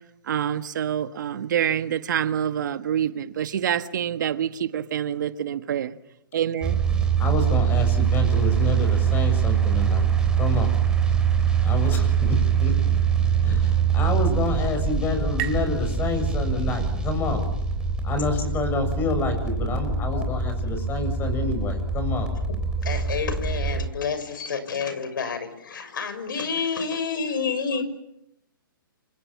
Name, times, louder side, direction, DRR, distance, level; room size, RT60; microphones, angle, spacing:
voice 1, 0.3-6.0 6.3-6.8, right 9 dB, 55° right, 1.5 m, -26 dB
sound 1, 6.6-23.9, right 7 dB, 5° right, 3.5 m, -23 dB
voice 2, 7.2-10.0 10.4-10.7 11.6-12.7 13.4-17.4 18.0-22.3, left 3 dB, 15° left, 7.2 m, -28 dB
sound 2, 13.9-17.3, right 10 dB, 35° right, 3.5 m, -40 dB
voice 3, 22.8-27.8, left 5 dB, 65° left, 6.4 m, -29 dB
29.5 x 26.5 x 7.5 m
hypercardioid pair, 140°, 12 cm